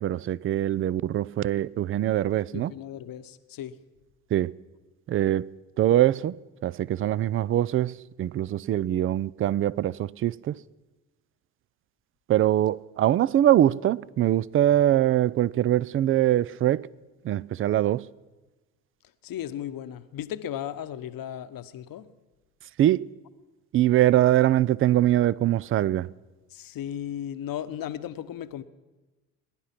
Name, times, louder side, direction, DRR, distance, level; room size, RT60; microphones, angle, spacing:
voice 1, 0.0-2.7 4.3-4.5 5.1-5.5 5.8-6.4 6.6-10.6 12.3-16.9 17.2-18.1 22.8-23.1 23.7-26.1, right 12 dB, 30° right, 0.4 m, -23 dB
voice 2, 2.5-3.8 19.2-22.1 26.5-28.6, left 10 dB, 50° left, 1.0 m, -35 dB
20.0 x 10.5 x 5.8 m
hypercardioid pair, 55°, 45 cm